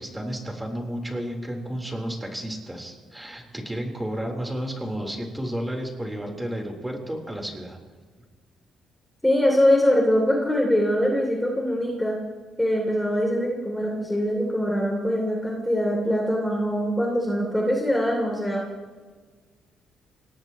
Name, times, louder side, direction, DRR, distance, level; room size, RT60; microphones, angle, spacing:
voice 1, 0.0-7.8, equal, 10° right, 1 dB, 3.9 m, -32 dB
voice 2, 9.2-12.2 12.6-18.6, equal, 5° left, -1 dB, 3.0 m, -23 dB
24.5 x 19.0 x 3.1 m, 1.4 s
cardioid pair, 90°, 0 cm